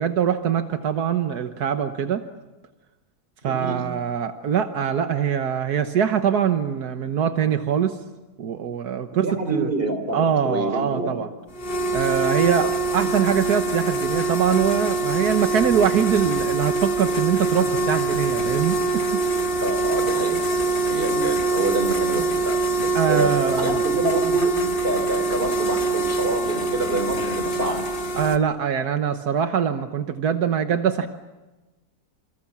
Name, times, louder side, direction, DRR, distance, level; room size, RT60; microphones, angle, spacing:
voice 1, 0.0-2.2 3.4-8.0 8.4-9.7 10.1-11.3 11.9-12.7 12.9-19.2 22.9-23.8 28.1-31.1, right 8 dB, 80° right, 8 dB, 1.7 m, -23 dB
voice 2, 3.4-3.8 9.2-11.3 13.0-13.1 19.6-27.8, right 2 dB, 35° right, 7 dB, 4.0 m, -27 dB
sound 1, 11.5-28.4, right 3 dB, 35° left, 1.7 m, -24 dB
28.5 x 27.5 x 7.3 m, 1.1 s
omnidirectional pair, 1.6 m